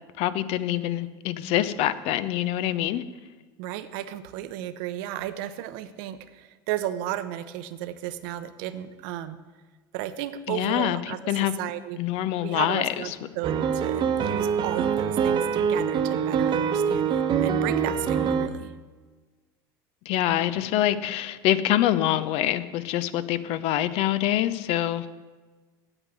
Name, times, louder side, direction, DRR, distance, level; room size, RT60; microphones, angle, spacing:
voice 1, 0.2-3.0 10.5-11.0 11.3-11.5 12.0-12.9 20.1-25.1, left 12 dB, 60° left, 14 dB, 0.7 m, -25 dB
voice 2, 3.6-9.4 9.9-12.0 12.4-18.7, right 12 dB, 70° right, 12 dB, 0.8 m, -34 dB
sound 1, 13.4-18.5, right 7 dB, 45° right, 1.0 m, -24 dB
8.9 x 8.2 x 7.5 m, 1.3 s
hypercardioid pair, 90°, 12 cm